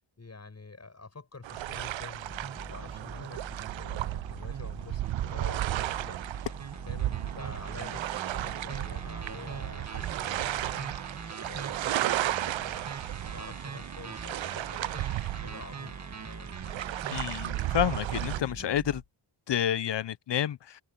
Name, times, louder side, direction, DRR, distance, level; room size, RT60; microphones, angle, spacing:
voice 1, 0.2-6.4 6.8-11.0 11.4-15.9 16.3-16.5, left 3 dB, 35° left, 7.2 m, -47 dB
sound 1, 1.4-18.4, right 14 dB, 70° right, 0.5 m, -34 dB
sound 2, 2.3-19.0, right 5 dB, 35° right, 1.8 m, -42 dB
voice 2, 17.1-19.0 19.5-20.8, left 10 dB, 60° left, 0.7 m, -29 dB
wide cardioid pair, 145°, 48 cm